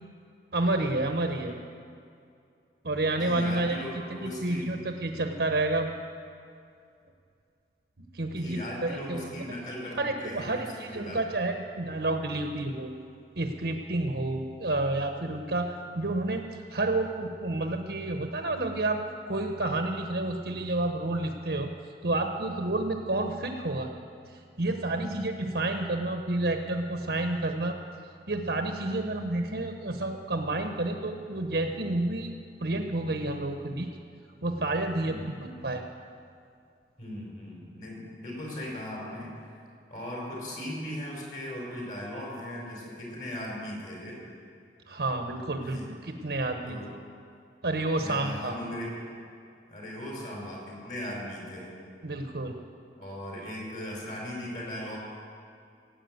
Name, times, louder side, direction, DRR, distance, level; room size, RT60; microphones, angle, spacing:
voice 1, 0.5-1.5 2.8-3.8 4.2-5.9 8.1-9.4 10.0-12.9 13.4-16.4 16.7-19.0 19.3-21.7 22.0-23.9 24.3-27.8 28.3-32.3 32.6-33.9 34.4-35.8 44.9-45.8 46.1-46.8 47.6-48.5 52.0-52.6, right 2 dB, 70° right, 4 dB, 1.1 m, -30 dB
voice 2, 3.2-4.7 8.3-11.2 25.0-25.4 35.0-35.4 37.0-39.5 39.9-44.2 45.6-45.9 46.7-46.9 47.9-49.0 49.7-51.8 53.0-55.0, left 1 dB, 45° left, -3 dB, 4.9 m, -38 dB
17.5 x 8.7 x 8.1 m, 2.4 s
head